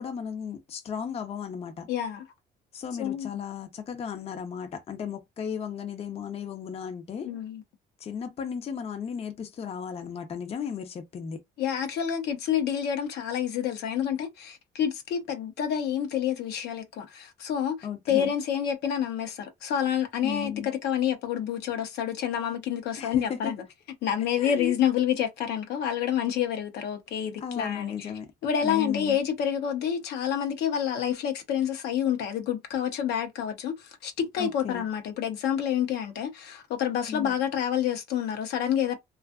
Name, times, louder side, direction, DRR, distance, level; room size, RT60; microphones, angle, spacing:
voice 1, 0.0-1.9 2.7-7.3 8.0-11.4 17.8-18.3 20.2-20.7 23.0-23.5 24.2-24.7 27.4-28.3 28.6-29.2 34.4-34.8 37.1-37.4, left 7 dB, 35° left, 0.5 m, -35 dB
voice 2, 1.9-2.2 3.0-3.3 7.2-7.6 11.6-17.8 18.1-23.6 24.0-28.1 28.4-33.8 34.0-39.0, left 9 dB, 80° left, 0.7 m, -28 dB
2.5 x 2.4 x 2.3 m
cardioid pair, 110°, 17 cm